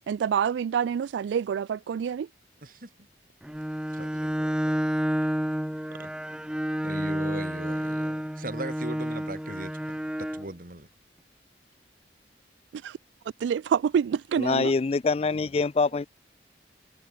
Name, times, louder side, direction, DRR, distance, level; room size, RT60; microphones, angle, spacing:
voice 1, 0.1-2.3 12.8-13.0 13.4-14.7, right 7 dB, 85° right, 0.3 m, -27 dB
Bowed string instrument, 3.4-10.5, equal, 5° right, 0.7 m, -30 dB
voice 2, 3.9-4.8 6.0-6.1 6.8-10.9, right 2 dB, 50° right, 2.5 m, -40 dB
voice 3, 14.4-16.1, left 4 dB, 35° left, 0.4 m, -25 dB
head